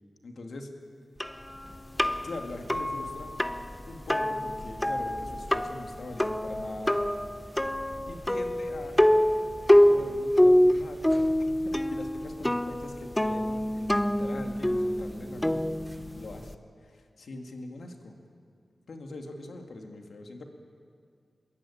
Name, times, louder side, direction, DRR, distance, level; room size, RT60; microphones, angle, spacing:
voice 1, 0.2-0.7 2.2-3.3 3.9-7.0 7.4-7.6 8.1-9.0 9.9-15.7 16.1-18.1 18.9-20.4, left 2 dB, 75° left, 3 dB, 2.6 m, -42 dB
sound 1, 1.2-16.5, left 1 dB, 10° left, 0.7 m, -26 dB
27.0 x 22.0 x 8.8 m, 2.2 s
wide cardioid pair, 115°, 0 cm